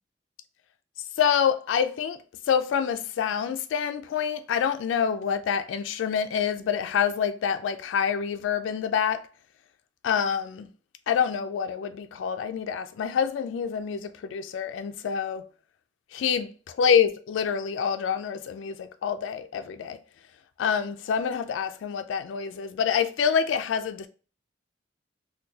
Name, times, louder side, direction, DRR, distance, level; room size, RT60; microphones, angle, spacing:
voice 1, 1.2-2.2 2.5-9.2 10.0-10.7 11.1-15.4 16.1-20.0 20.6-24.1, left 7 dB, 90° left, 0.3 m, -26 dB
3.7 x 2.2 x 2.7 m
head